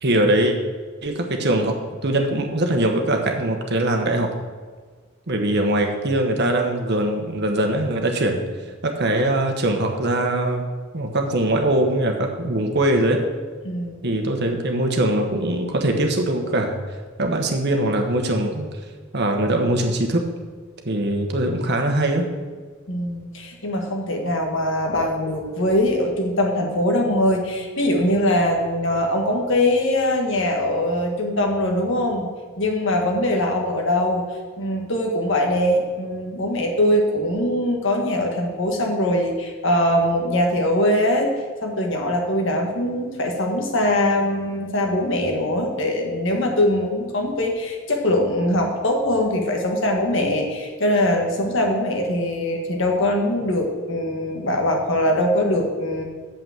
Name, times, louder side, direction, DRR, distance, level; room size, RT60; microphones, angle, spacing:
voice 1, 0.0-0.6 1.0-4.3 5.3-8.4 8.8-10.7 10.9-13.3 14.0-16.8 17.2-18.7 19.1-20.3 20.8-22.3, right 1 dB, 55° right, 4 dB, 1.2 m, -22 dB
voice 2, 13.6-14.0 22.9-32.3 32.6-34.2 34.6-41.3 41.6-56.0, left 1 dB, 70° left, 2 dB, 1.6 m, -22 dB
7.1 x 5.9 x 7.5 m, 1.5 s
head